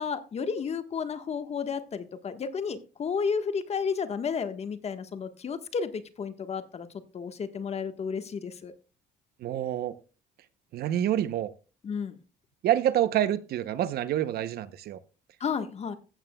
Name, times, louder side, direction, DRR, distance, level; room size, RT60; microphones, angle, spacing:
voice 1, 0.0-6.9 7.1-8.7 11.8-12.2 15.4-16.0, left 6 dB, 40° left, 1.4 m, -32 dB
voice 2, 9.4-10.0 10.7-11.5 12.6-15.0, right 11 dB, 65° right, 0.8 m, -27 dB
15.0 x 8.8 x 2.3 m
cardioid pair, 110°, 17 cm